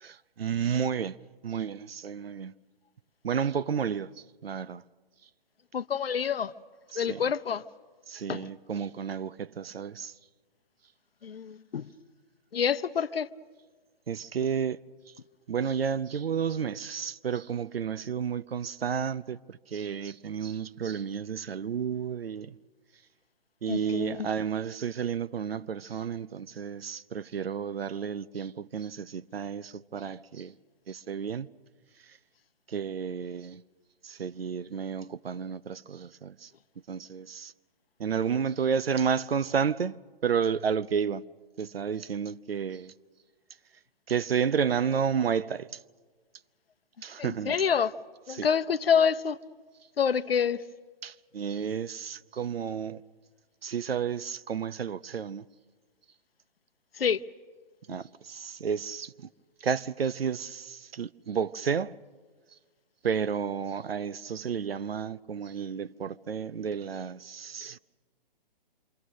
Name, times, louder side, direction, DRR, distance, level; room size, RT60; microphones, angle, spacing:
voice 1, 0.0-1.1 1.4-2.5 3.2-4.1 4.4-4.8 6.9-7.2 8.1-10.1 14.1-14.8 15.5-22.5 23.6-30.5 30.9-31.5 32.7-33.6 34.0-36.5 36.9-37.5 38.0-40.0 40.2-41.2 41.6-42.9 44.1-45.7 47.0-47.6 48.3-48.5 51.0-53.0 53.6-55.4 57.9-59.1 59.6-61.9 63.0-67.8, right 7 dB, 85° right, 0.7 m, -31 dB
voice 2, 5.7-6.5 7.0-7.6 8.3-8.5 11.2-11.9 12.5-13.3 23.7-24.3 47.2-47.9 48.3-49.4 50.0-50.6 57.0-57.2, left 7 dB, 80° left, 0.8 m, -27 dB
27.0 x 24.5 x 6.4 m
hypercardioid pair, 135°, 29 cm